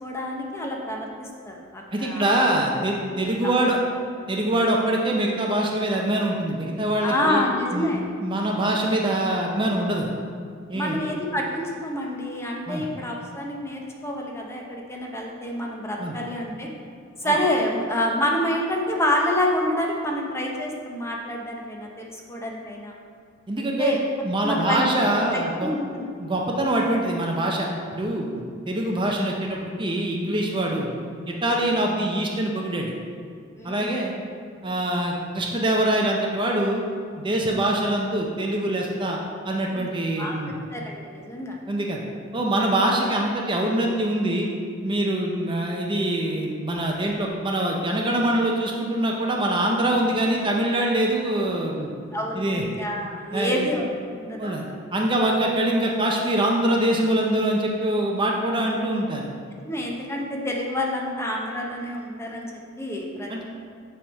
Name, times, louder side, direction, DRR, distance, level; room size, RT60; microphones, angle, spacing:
voice 1, 0.0-2.3 3.2-3.3 3.6-3.7 7.0-8.1 10.7-16.7 17.2-22.9 23.6-24.0 24.4-24.8 25.3-26.1 31.6-31.7 33.5-33.9 39.7-40.4 40.7-41.6 42.0-42.1 52.1-53.8 54.1-54.7 55.2-55.3 59.5-63.4, left 1 dB, 15° left, -1 dB, 0.8 m, -28 dB
voice 2, 1.9-3.8 4.3-7.4 7.7-7.9 8.2-10.1 10.7-11.0 12.7-12.8 16.0-16.1 17.2-17.3 23.5-23.9 24.2-25.7 26.2-30.9 31.3-32.9 33.6-34.1 34.6-36.8 37.2-39.2 39.4-40.5 41.7-42.0 42.3-44.5 44.8-51.9 52.4-52.6 53.3-53.7 54.4-54.6 54.9-59.3 63.3-63.4, right 1 dB, 25° right, 0 dB, 0.6 m, -24 dB
7.2 x 3.5 x 6.3 m, 2.2 s
head